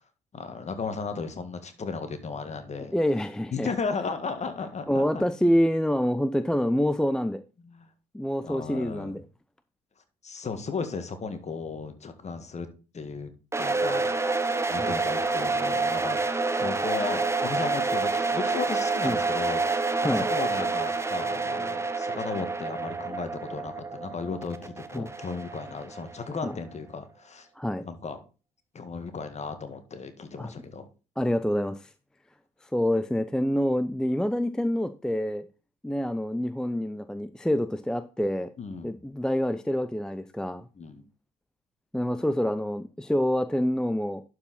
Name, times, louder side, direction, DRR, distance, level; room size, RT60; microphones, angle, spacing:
voice 1, 0.3-2.9 3.5-5.2 7.6-7.9 8.4-9.2 10.2-12.7 12.9-13.3 13.6-14.1 14.7-16.3 16.5-19.6 20.0-27.5 27.8-28.2 28.7-30.9 38.6-39.0 40.8-41.0, left 4 dB, 35° left, 1.7 m, -35 dB
voice 2, 2.9-3.7 4.9-7.4 8.1-9.2 14.8-14.9 19.0-19.2 20.0-20.3 24.9-25.1 26.4-26.6 27.6-27.9 30.4-30.5 31.2-31.9 32.6-35.5 35.8-38.5 38.8-40.7 41.9-44.2, equal, 5° left, 0.5 m, -27 dB
sound 1, 13.5-26.4, right 3 dB, 15° right, 1.0 m, -28 dB
11.5 x 4.8 x 4.2 m
figure-of-eight pair, 50°, 20 cm